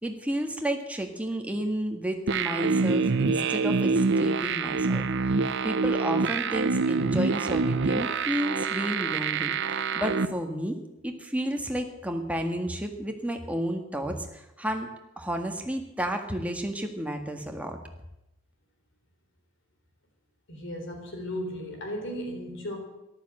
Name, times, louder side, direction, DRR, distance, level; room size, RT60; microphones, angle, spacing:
voice 1, 0.0-5.1 5.6-9.5 9.9-10.8 11.0-14.9 15.2-17.8, equal, 5° right, 4 dB, 1.7 m, -31 dB
sound 1, 2.3-10.3, right 4 dB, 60° right, 0.8 m, -26 dB
voice 2, 20.5-22.8, equal, 65° left, 3 dB, 3.7 m, -35 dB
14.0 x 12.0 x 7.7 m, 0.91 s
head